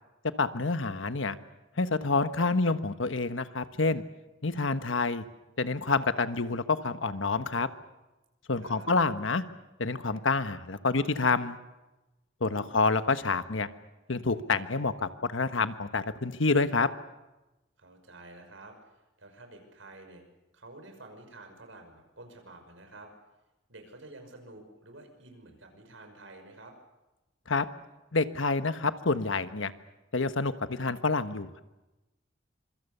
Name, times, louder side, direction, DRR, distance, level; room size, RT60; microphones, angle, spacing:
voice 1, 0.4-1.4 1.8-4.0 4.4-5.2 5.6-7.7 8.5-9.4 9.8-11.6 12.4-13.7 14.1-16.9 27.5-27.7 28.1-29.7 30.1-31.6, left 3 dB, 80° left, 11 dB, 1.3 m, -28 dB
voice 2, 8.6-8.9 12.4-12.9 17.8-20.2 20.5-23.1 23.7-26.8, right 2 dB, 85° right, 5 dB, 5.8 m, -50 dB
26.0 x 24.0 x 6.8 m, 1.0 s
head